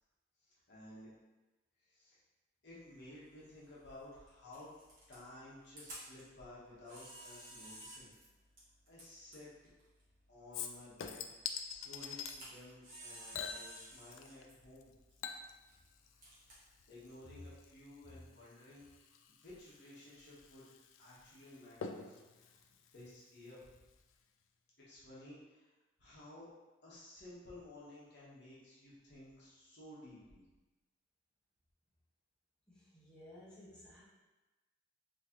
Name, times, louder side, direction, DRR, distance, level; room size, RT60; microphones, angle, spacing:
voice 1, 0.4-1.1 1.8-2.2 2.6-4.7 5.1-8.1 8.9-9.5 10.3-14.9 16.7-20.6 21.0-22.6 22.9-23.8 24.8-25.7 26.0-26.5 26.8-30.4, left 1 dB, 55° left, -8 dB, 1.1 m, -55 dB
Camera, 2.7-18.1, right 1 dB, 40° right, 1.3 m, -57 dB
Chink clink / Liquid, 10.5-12.4 13.3-14.5 14.7-23.8 24.1-24.2, left 7 dB, 75° left, 0.3 m, -47 dB
voice 2, 32.7-34.0, left 1 dB, 5° left, -12 dB, 1.1 m, -56 dB
3.7 x 3.0 x 2.9 m, 1.1 s
head